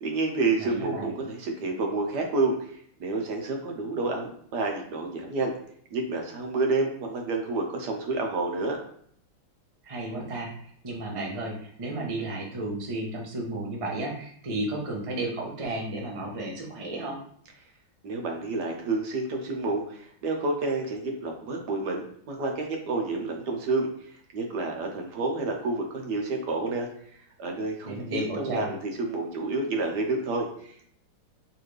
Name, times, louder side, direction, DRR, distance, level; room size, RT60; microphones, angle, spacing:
voice 1, 0.0-5.5 5.9-8.8 18.0-23.9 24.3-30.9, right 3 dB, 65° right, 2 dB, 1.2 m, -29 dB
voice 2, 0.6-1.1 9.8-10.5 10.8-17.2 27.8-28.7, right 2 dB, 50° right, -2 dB, 0.4 m, -33 dB
4.7 x 3.3 x 3.2 m, 0.62 s
omnidirectional pair, 2.2 m